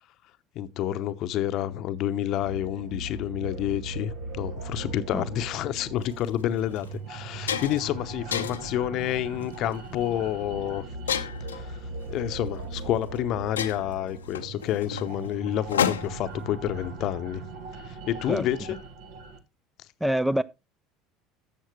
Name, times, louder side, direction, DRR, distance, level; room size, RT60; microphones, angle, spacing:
voice 1, 0.5-10.8 11.5-11.8 12.1-17.4 17.9-18.8, left 12 dB, 55° left, 0.8 m, -29 dB
sound 1, 2.4-19.4, right 2 dB, 65° right, 1.8 m, -39 dB
sound 2, 6.0-6.2 6.8-6.9 7.2-7.9 8.3-8.8 9.4-9.7 11.1-11.6 12.7-12.8 13.2-13.3 13.6-16.3, left 8 dB, 85° left, 0.8 m, -30 dB
voice 2, 20.0-20.4, right 1 dB, 5° right, 0.5 m, -25 dB
12.0 x 7.4 x 3.2 m
hypercardioid pair, 70°, 0 cm